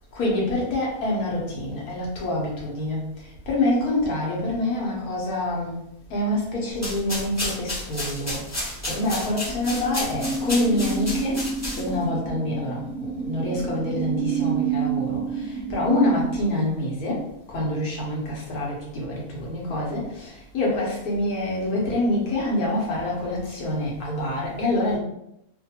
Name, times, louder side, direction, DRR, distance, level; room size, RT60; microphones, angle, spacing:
voice 1, 0.1-5.8 6.1-11.5 11.8-25.0, left 1 dB, 85° left, -3 dB, 1.4 m, -26 dB
sound 1, 6.7-12.1, left 1 dB, 15° left, 0.6 m, -32 dB
sound 2, 9.5-16.4, right 5 dB, 60° right, 0.7 m, -29 dB
3.2 x 2.2 x 2.8 m, 0.80 s
omnidirectional pair, 1.5 m